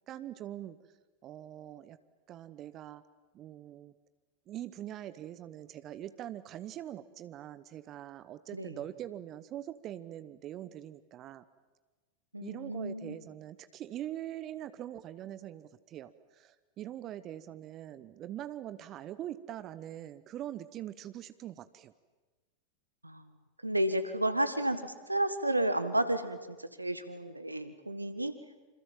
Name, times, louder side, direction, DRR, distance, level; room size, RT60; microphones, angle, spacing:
voice 1, 0.1-0.8 1.2-2.0 2.3-3.0 3.3-3.9 4.5-11.4 12.4-21.9, right 12 dB, 35° right, 14 dB, 1.0 m, -43 dB
voice 2, 12.3-13.2 23.0-23.3 23.6-28.3, right 1 dB, 85° right, 11 dB, 1.6 m, -32 dB
27.5 x 26.5 x 7.5 m, 1.2 s
figure-of-eight pair, 90°, 0 cm